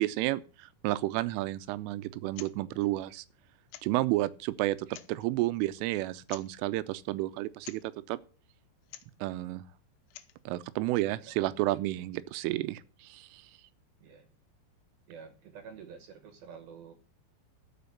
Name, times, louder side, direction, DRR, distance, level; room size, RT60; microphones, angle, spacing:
voice 1, 0.0-3.3 3.8-7.8 8.1-8.2 9.2-9.6 10.5-13.4, right 17 dB, 90° right, 3.3 m, -31 dB
sound 1, 2.3-2.5 2.8-2.9 3.7-4.1 4.8-5.3 6.3-6.6 7.6-7.9 8.8-9.2 10.0-10.4, left 14 dB, 80° left, 3.1 m, -48 dB
voice 2, 11.2-11.6 14.0-14.3 15.1-16.9, right 6 dB, 70° right, 2.4 m, -49 dB
13.5 x 5.2 x 7.0 m
omnidirectional pair, 5.6 m